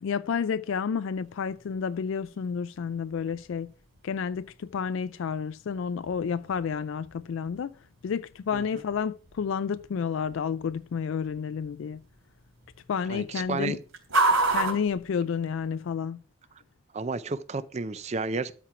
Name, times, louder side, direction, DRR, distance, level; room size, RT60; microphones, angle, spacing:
voice 1, 0.0-3.7 4.0-7.7 8.0-12.0 12.9-13.8 14.5-16.2, left 6 dB, 70° left, 0.3 m, -30 dB
sound 1, 1.1-15.9, right 2 dB, 65° right, 3.5 m, -35 dB
voice 2, 13.1-13.8 16.9-18.5, right 3 dB, 30° right, 0.4 m, -31 dB
13.0 x 4.4 x 4.8 m
head